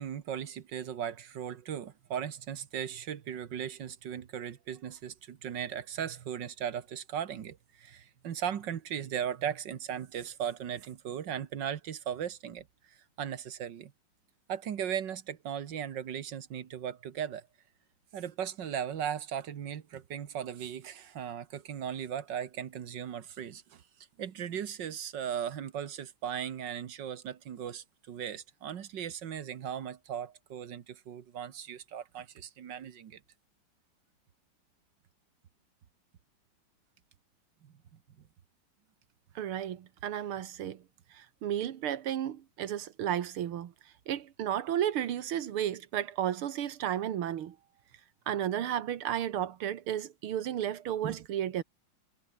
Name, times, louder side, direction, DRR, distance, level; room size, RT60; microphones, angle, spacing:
voice 1, 0.0-13.9 14.5-17.5 18.1-23.8 24.2-33.2 37.6-37.7 51.0-51.2, right 9 dB, 60° right, 1.9 m, -37 dB
voice 2, 39.4-40.8 41.1-43.7 44.1-47.6 48.3-51.6, right 10 dB, 85° right, 2.2 m, -33 dB
omnidirectional pair, 2.3 m